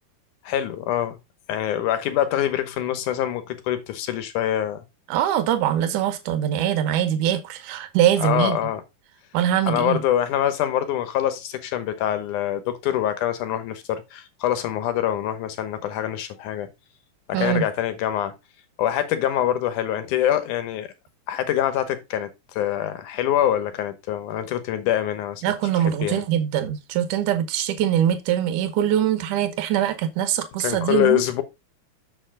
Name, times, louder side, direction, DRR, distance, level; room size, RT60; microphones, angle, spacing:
voice 1, 0.4-1.2 1.5-4.8 8.2-8.8 9.7-16.7 17.3-18.3 18.8-20.9 21.3-25.5 25.8-26.2 30.6-31.4, left 11 dB, 70° left, 2.4 m, -25 dB
voice 2, 5.1-8.6 9.3-10.0 17.3-17.7 25.4-31.2, right 10 dB, 75° right, 2.5 m, -23 dB
7.0 x 6.8 x 3.8 m
omnidirectional pair, 3.9 m